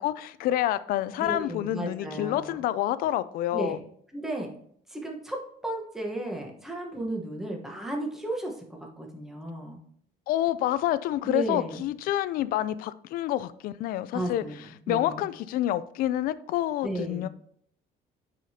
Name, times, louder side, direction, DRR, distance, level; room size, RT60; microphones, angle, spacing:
voice 1, 0.0-3.8 10.3-14.4 14.9-17.3, left 13 dB, 70° left, 0.4 m, -28 dB
voice 2, 1.2-2.6 3.5-3.8 4.1-4.5 4.9-9.8 11.2-11.8 14.1-15.3 16.8-17.3, right 1 dB, 5° right, 1.2 m, -34 dB
11.5 x 5.0 x 2.8 m
cardioid pair, 145°, 15 cm